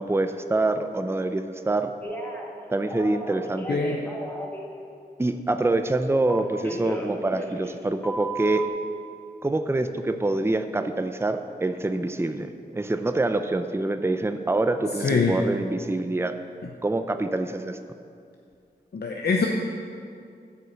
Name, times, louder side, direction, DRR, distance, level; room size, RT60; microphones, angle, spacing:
voice 1, 0.0-1.9 2.7-3.8 5.2-8.7 9.4-16.3 16.8-17.8, right 2 dB, 15° right, 8 dB, 0.6 m, -26 dB
Telephone, 2.0-2.5 2.8-4.6 6.3-7.8 8.0-8.7, right 2 dB, 10° left, 1.7 m, -34 dB
voice 2, 3.7-4.0 15.0-15.4 18.9-19.5, left 4 dB, 70° left, 0 dB, 0.8 m, -23 dB
9.8 x 5.5 x 7.5 m, 2.4 s
cardioid pair, 50°, 17 cm